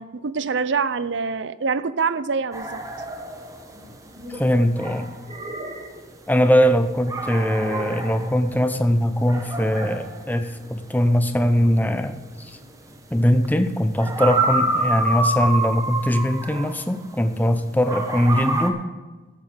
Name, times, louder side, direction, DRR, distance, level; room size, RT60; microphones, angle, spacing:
voice 1, 0.0-2.8, right 5 dB, 75° right, 15 dB, 0.6 m, -25 dB
sound 1, 2.5-17.5 17.8-18.7, right 2 dB, 20° right, 1.1 m, -28 dB
sound 2, 3.7-4.5 5.2-6.1 7.6-8.1, right 1 dB, 35° right, 1.4 m, -36 dB
voice 2, 4.3-5.1 6.3-12.6 13.1-18.8, equal, 10° left, 9 dB, 0.7 m, -21 dB
14.5 x 8.5 x 5.0 m, 1.2 s
head